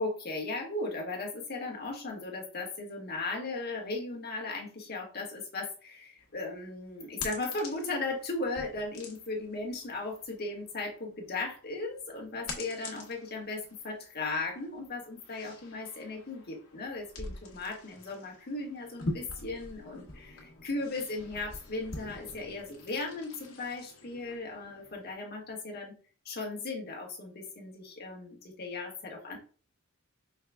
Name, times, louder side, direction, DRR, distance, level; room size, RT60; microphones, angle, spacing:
voice 1, 0.0-25.9 26.2-29.4, left 3 dB, 50° left, 0 dB, 1.4 m, -37 dB
sound 1, 6.2-25.1, left 2 dB, 80° left, 1.3 m, -45 dB
5.6 x 2.3 x 3.4 m, 0.40 s
head